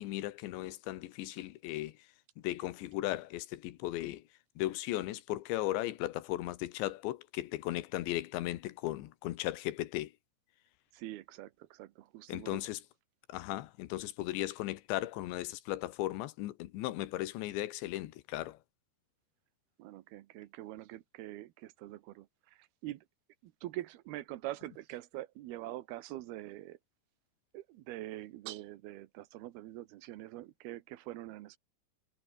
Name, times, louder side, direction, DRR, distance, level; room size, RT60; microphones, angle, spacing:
voice 1, 0.0-2.0 2.4-4.2 4.6-10.1 12.3-12.8 13.3-18.6, left 16 dB, 80° left, 3.5 m, -36 dB
voice 2, 10.9-12.6 19.8-23.1 23.4-26.8 27.5-31.6, right 15 dB, 70° right, 2.7 m, -44 dB
omnidirectional pair, 5.1 m